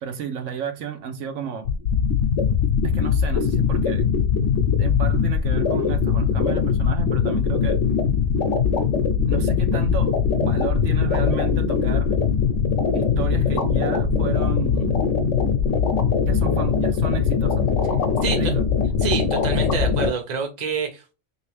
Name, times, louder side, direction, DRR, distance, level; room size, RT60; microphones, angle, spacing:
voice 1, 0.0-1.7 2.8-4.1 4.7-7.8 9.3-12.2 12.9-15.0 16.2-17.7 18.3-18.6, right 7 dB, 85° right, 1.1 m, -32 dB
sound 1, 1.7-20.1, left 6 dB, 85° left, 1.0 m, -21 dB
voice 2, 18.2-18.5 19.0-21.1, right 5 dB, 40° right, 0.9 m, -27 dB
3.2 x 3.0 x 3.2 m
omnidirectional pair, 1.2 m